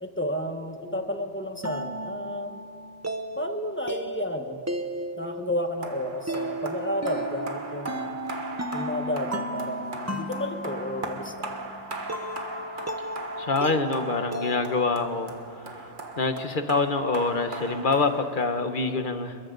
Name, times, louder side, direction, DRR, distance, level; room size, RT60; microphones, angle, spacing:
voice 1, 0.0-2.6 3.3-4.6 5.2-8.2 8.7-11.5, equal, 10° left, 5 dB, 1.3 m, -32 dB
sound 1, 0.8-15.6, right 1 dB, 15° right, 0.9 m, -35 dB
sound 2, 5.8-18.8, right 3 dB, 45° right, 1.7 m, -39 dB
voice 2, 13.4-15.3 16.2-19.4, left 3 dB, 45° left, 8 dB, 1.3 m, -25 dB
29.5 x 22.0 x 4.0 m, 2.3 s
omnidirectional pair, 1.2 m